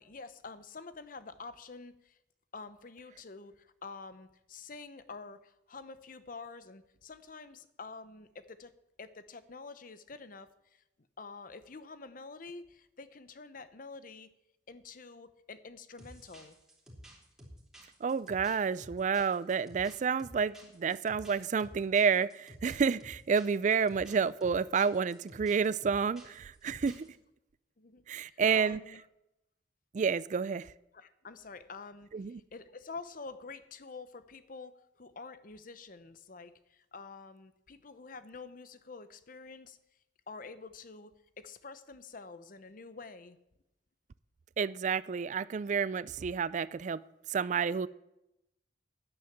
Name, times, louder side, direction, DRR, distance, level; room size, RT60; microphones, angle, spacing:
voice 1, 0.0-2.2 2.5-8.7 9.0-10.8 11.2-14.3 14.7-16.6 27.8-29.0 30.9-39.8 40.3-43.4, left 4 dB, 45° left, 13 dB, 0.8 m, -48 dB
sound 1, 16.0-27.1, equal, 5° right, 3.3 m, -52 dB
voice 2, 18.0-27.1 28.1-28.8 29.9-30.7 32.1-32.4 44.6-47.0 47.3-47.9, right 6 dB, 40° right, 18 dB, 0.3 m, -30 dB
10.5 x 9.5 x 7.1 m, 0.88 s
head